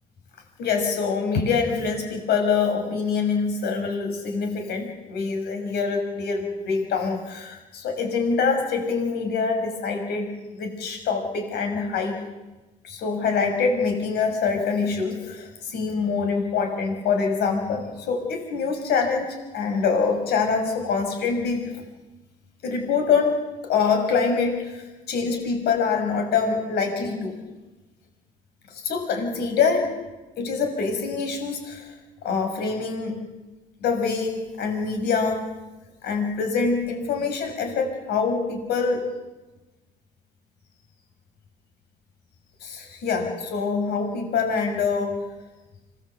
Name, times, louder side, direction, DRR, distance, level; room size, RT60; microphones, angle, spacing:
voice 1, 0.6-12.2 12.8-21.7 22.6-23.3 23.6-27.4 28.7-29.9 30.4-31.9 32.2-33.2 33.8-35.4 36.0-39.0 42.6-45.2, left 5 dB, 75° left, 4 dB, 6.4 m, -25 dB
27.0 x 20.5 x 8.2 m, 1.1 s
cardioid pair, 110°, 17 cm